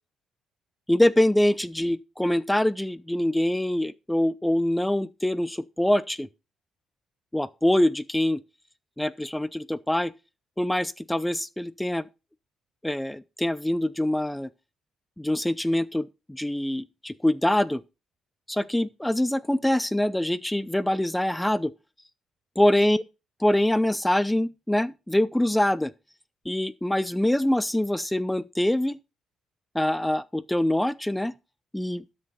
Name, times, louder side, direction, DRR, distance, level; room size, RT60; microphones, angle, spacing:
voice 1, 0.9-6.3 7.3-8.4 9.0-10.1 10.6-12.1 12.8-14.5 15.2-17.8 18.5-21.7 22.6-23.0 23.4-25.9 26.5-29.0 29.7-31.3 31.7-32.0, left 1 dB, 5° left, 0.5 m, -24 dB
12.5 x 6.3 x 4.2 m
cardioid pair, 90°, 0 cm